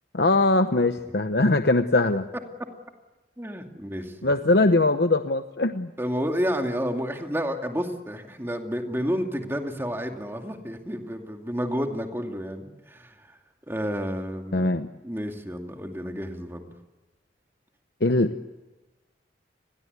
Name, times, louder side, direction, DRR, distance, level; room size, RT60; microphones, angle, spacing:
voice 1, 0.1-2.3 4.2-5.9 14.5-14.9 18.0-18.4, left 2 dB, 60° left, 8 dB, 0.9 m, -21 dB
voice 2, 3.4-4.3 6.0-13.4 13.7-14.7 15.0-16.7, equal, 15° right, 3 dB, 2.5 m, -30 dB
29.5 x 22.0 x 8.3 m, 1.2 s
head